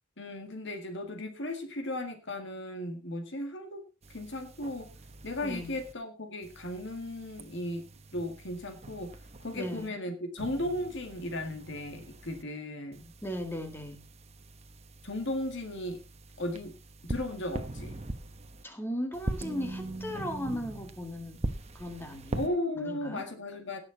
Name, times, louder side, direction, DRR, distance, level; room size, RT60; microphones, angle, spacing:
voice 1, 0.2-4.9 5.2-9.1 9.4-13.1 15.0-16.0 16.4-16.8 17.0-18.0 22.3-23.8, left 1 dB, 60° left, 6 dB, 2.0 m, -36 dB
sound 1, 4.0-5.9 6.4-9.9 10.4-12.4 12.9-18.6 19.1-22.5, right 1 dB, 30° right, 1.1 m, -42 dB
voice 2, 5.4-5.7 9.5-10.0 13.2-14.0 18.6-21.4 21.7-22.5 22.8-23.2, equal, 10° left, 6 dB, 1.9 m, -37 dB
17.5 x 6.8 x 4.0 m, 0.29 s
head